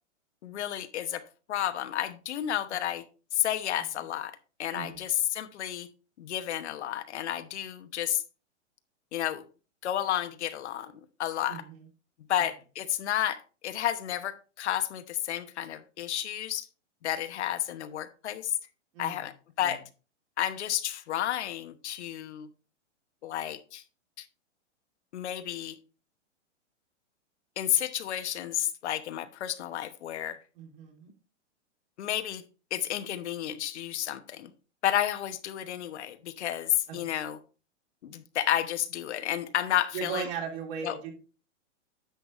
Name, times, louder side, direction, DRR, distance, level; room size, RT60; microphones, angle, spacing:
voice 1, 0.4-1.2 1.5-3.0 3.3-4.3 4.6-5.9 6.2-8.2 9.1-9.4 9.8-10.9 11.2-11.6 12.3-16.7 17.0-18.6 19.0-19.8 20.4-22.5 23.2-23.8 24.2-24.3 25.1-25.8 27.6-30.4 32.0-32.4 32.7-34.5 34.8-37.4 38.0-40.3 40.8-41.0, left 11 dB, 65° left, 9 dB, 1.0 m, -31 dB
voice 2, 4.7-5.0 11.5-11.8 18.9-19.2 19.6-19.7 30.6-31.1 36.9-37.0 39.9-41.1, right 7 dB, 50° right, 0 dB, 3.3 m, -37 dB
10.5 x 6.7 x 3.1 m, 0.35 s
hypercardioid pair, 140°, 36 cm